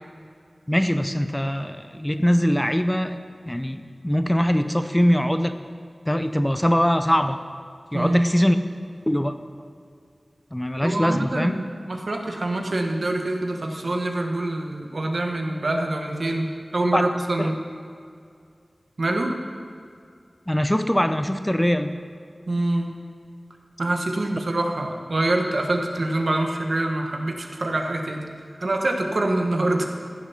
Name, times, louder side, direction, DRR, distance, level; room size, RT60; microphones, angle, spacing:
voice 1, 0.7-3.2 3.5-5.5 6.1-7.4 7.9-8.6 9.1-9.3 10.5-11.6 16.9-17.0 17.4-17.5 20.5-21.9, equal, 10° left, 9 dB, 0.6 m, -22 dB
voice 2, 7.9-8.3 10.8-17.5 19.0-19.3 22.5-22.9 23.8-28.3 28.6-29.9, right 2 dB, 75° right, 2 dB, 1.2 m, -25 dB
15.0 x 6.9 x 5.7 m, 2.3 s
wide cardioid pair, 50°, 0 cm